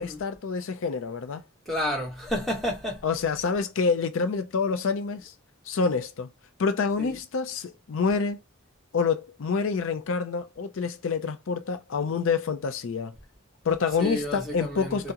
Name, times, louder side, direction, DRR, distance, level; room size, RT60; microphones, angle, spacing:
voice 1, 0.0-1.4 3.0-5.3 5.7-6.3 6.6-8.4 8.9-13.1 13.6-15.1, left 5 dB, 65° left, 0.4 m, -27 dB
voice 2, 1.7-3.0 7.0-7.1 14.0-15.1, left 1 dB, ahead, 1.0 m, -31 dB
3.5 x 2.0 x 2.7 m
head